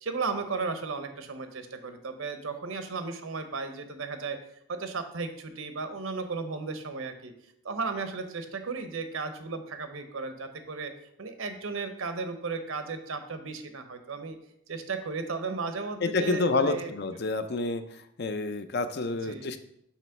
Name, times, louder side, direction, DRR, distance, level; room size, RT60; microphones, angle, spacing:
voice 1, 0.0-4.4 4.7-7.3 7.6-10.9 11.2-14.4 14.7-16.9 19.2-19.5, right 4 dB, 75° right, 8 dB, 0.8 m, -35 dB
voice 2, 16.0-17.8 18.2-19.6, left 3 dB, 50° left, 9 dB, 0.5 m, -28 dB
7.3 x 3.0 x 5.8 m, 0.74 s
head